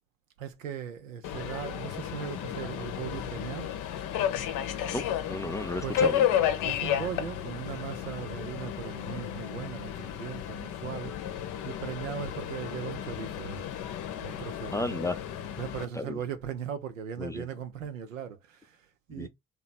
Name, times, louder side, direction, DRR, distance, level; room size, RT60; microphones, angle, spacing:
voice 1, 0.4-3.7 5.8-6.3 6.6-11.1 11.6-13.7 14.2-15.0 15.6-19.3, right 8 dB, 85° right, 0.6 m, -38 dB
Subway metro underground, 1.2-15.8, left 10 dB, 55° left, 0.7 m, -32 dB
voice 2, 4.9-6.2 14.7-15.2 16.0-16.2 17.2-17.4 19.2-19.3, left 2 dB, 10° left, 0.4 m, -33 dB
2.8 x 2.2 x 4.0 m
figure-of-eight pair, 45°, 38 cm